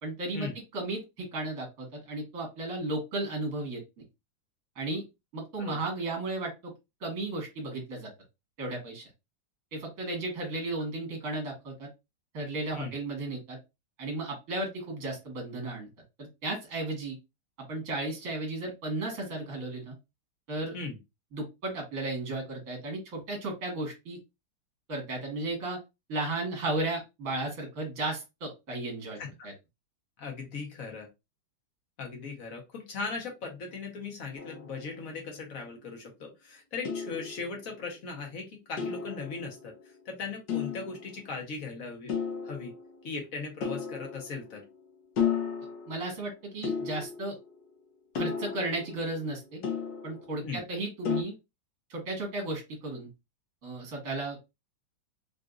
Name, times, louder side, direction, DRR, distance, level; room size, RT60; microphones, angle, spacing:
voice 1, 0.0-3.8 4.7-5.0 5.3-6.7 7.0-8.1 8.6-9.1 9.7-11.9 12.3-13.6 14.0-15.9 16.2-17.2 17.7-19.9 20.5-20.7 21.3-24.2 24.9-25.8 26.1-29.2 29.4-29.5 45.9-47.4 48.1-49.6 50.0-51.3 51.9-53.1 53.6-54.4, right 2 dB, 50° right, 1 dB, 1.6 m, -34 dB
voice 2, 30.2-31.1 32.0-39.7 40.0-42.2 42.4-42.7 43.0-44.6 50.4-50.6, left 4 dB, 50° left, 1 dB, 1.2 m, -38 dB
sound 1, 34.4-35.4 36.8-37.9 38.8-40.0 40.5-41.4 42.1-43.1 43.6-44.8 45.2-46.2 46.6-47.6 48.1-50.5 51.0-51.2, left 7 dB, 70° left, 1.4 m, -34 dB
3.8 x 2.5 x 2.3 m, 0.23 s
omnidirectional pair, 2.1 m